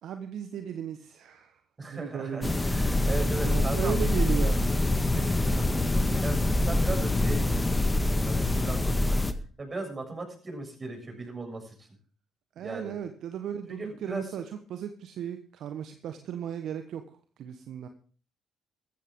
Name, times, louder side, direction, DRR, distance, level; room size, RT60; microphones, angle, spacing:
voice 1, 0.0-2.5 3.4-4.7 12.6-14.4 14.7-17.0 17.4-17.9, right 9 dB, 65° right, 1.2 m, -36 dB
voice 2, 1.8-4.0 5.2-11.9 12.6-12.9 13.7-14.3, right 2 dB, 30° right, 7.0 m, -38 dB
sound 1, 2.4-9.3, left 2 dB, 20° left, 1.6 m, -25 dB
14.5 x 14.5 x 3.7 m
hypercardioid pair, 50°, 0 cm